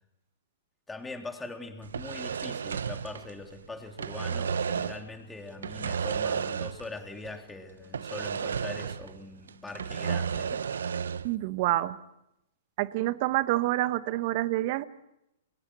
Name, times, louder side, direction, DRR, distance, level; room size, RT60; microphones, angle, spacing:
voice 1, 0.9-10.9, left 3 dB, 10° left, 4 dB, 3.3 m, -42 dB
sound 1, 1.8-3.6 3.9-5.1 5.6-7.0 7.2-7.4 7.9-9.2 9.5-11.3, right 7 dB, 80° right, 0.9 m, -32 dB
voice 2, 11.2-12.0 12.8-14.8, right 16 dB, 50° right, 13 dB, 1.3 m, -27 dB
29.5 x 23.0 x 6.3 m, 0.86 s
hypercardioid pair, 120°, 0 cm